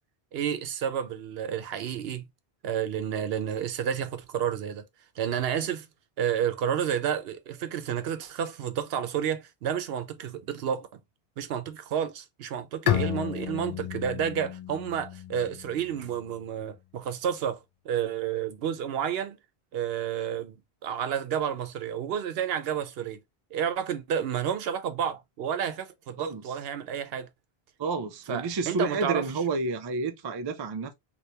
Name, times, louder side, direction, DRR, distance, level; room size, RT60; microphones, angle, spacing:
voice 1, 0.3-2.2 2.6-4.8 5.2-5.9 6.2-10.9 11.4-19.4 19.7-20.5 20.8-23.2 23.5-27.3 28.3-29.3, right 8 dB, 75° right, 0.8 m, -30 dB
Bowed string instrument, 12.9-16.4, left 10 dB, 55° left, 0.4 m, -32 dB
voice 2, 27.8-30.9, right 3 dB, 40° right, 0.3 m, -30 dB
2.8 x 2.7 x 3.2 m
omnidirectional pair, 1.0 m